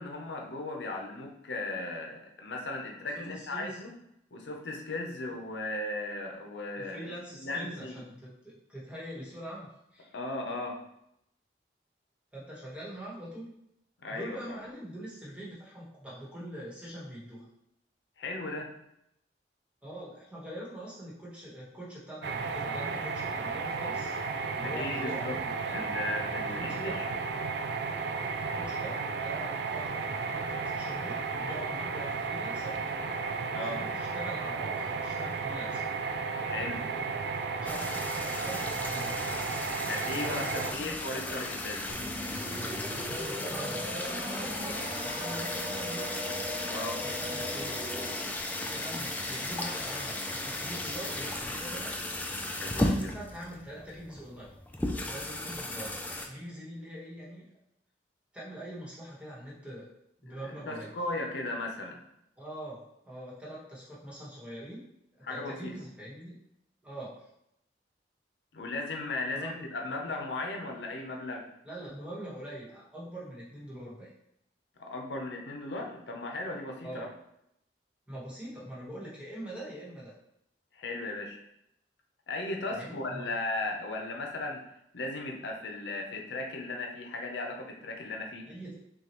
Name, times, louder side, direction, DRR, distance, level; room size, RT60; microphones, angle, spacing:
voice 1, 0.0-3.9 4.3-7.1 7.4-8.0 10.1-10.9 14.0-14.6 18.2-18.9 24.6-25.4 25.7-27.1 33.5-33.9 36.4-36.9 39.8-40.4 40.7-42.0 46.7-47.1 52.6-53.2 60.3-62.0 65.2-65.7 68.5-71.5 74.8-77.1 80.7-81.4 82.3-84.7 84.9-88.5, left 2 dB, 85° left, 1 dB, 0.7 m, -36 dB
voice 2, 3.1-3.8 6.8-10.1 12.3-13.5 14.1-17.5 19.8-24.2 24.5-25.8 26.4-26.9 28.5-32.8 33.5-35.8 37.5-39.2 40.2-41.3 42.9-46.1 47.0-47.8 48.7-52.1 52.7-54.5 55.0-55.9 56.2-57.5 58.3-59.9 60.2-60.9 62.4-64.9 65.2-66.4 66.8-67.3 69.3-69.6 71.6-74.1 76.8-77.1 78.1-80.1 82.7-83.3 88.5-88.8, right 1 dB, 5° right, -6 dB, 1.2 m, -43 dB
sound 1, 22.2-40.7, right 4 dB, 70° right, 0.4 m, -33 dB
sound 2, 37.6-56.3, left 1 dB, 10° left, 0.3 m, -35 dB
sound 3, 41.9-48.4, equal, 30° right, 0.7 m, -39 dB
6.2 x 2.3 x 3.0 m, 0.80 s
head